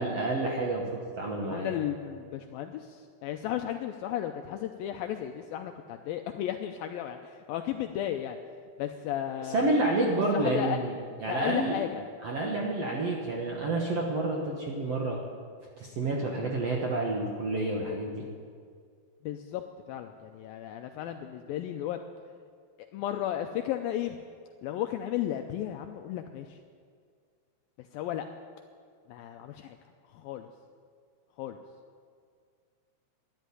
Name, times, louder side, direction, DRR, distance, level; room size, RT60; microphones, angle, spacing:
voice 1, 0.0-1.7 9.5-10.9 11.2-11.8 12.2-15.2 15.8-18.2, right 2 dB, 60° right, -1 dB, 1.6 m, -29 dB
voice 2, 1.5-8.4 8.8-9.7 10.3-10.8 11.3-12.1 19.2-22.0 22.8-24.2 24.6-26.6 27.8-28.3 29.1-29.8 30.1-30.5 31.4-31.6, left 11 dB, 85° left, 6 dB, 2.1 m, -34 dB
13.0 x 11.0 x 9.9 m, 2.1 s
omnidirectional pair, 4.8 m